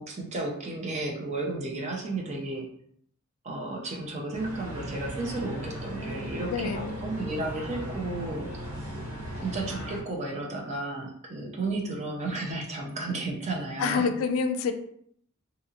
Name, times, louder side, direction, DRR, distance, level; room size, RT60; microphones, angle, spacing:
voice 1, 0.0-2.7 3.4-8.8 9.4-14.1, right 2 dB, 35° right, 0 dB, 0.5 m, -33 dB
sound 1, 4.3-10.0, equal, 85° right, 0.9 m, -37 dB
voice 2, 6.5-6.9 13.8-14.7, left 5 dB, 80° left, 8 dB, 0.3 m, -27 dB
2.7 x 2.6 x 2.4 m, 0.66 s
head